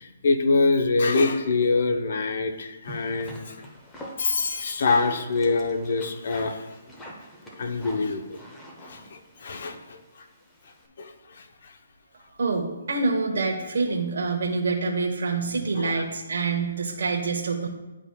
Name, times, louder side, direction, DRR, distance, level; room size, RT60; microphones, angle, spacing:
voice 1, 0.0-3.6 4.2-6.7 7.6-8.2 8.8-10.3 11.0-11.8 15.8-16.0, left 3 dB, 60° left, 7 dB, 0.7 m, -25 dB
sound 1, 2.8-10.9, right 1 dB, 10° left, 1.0 m, -44 dB
voice 2, 12.1-17.7, right 4 dB, 65° right, -1 dB, 1.0 m, -26 dB
10.5 x 4.9 x 2.3 m, 1.1 s
hypercardioid pair, 150°, 0 cm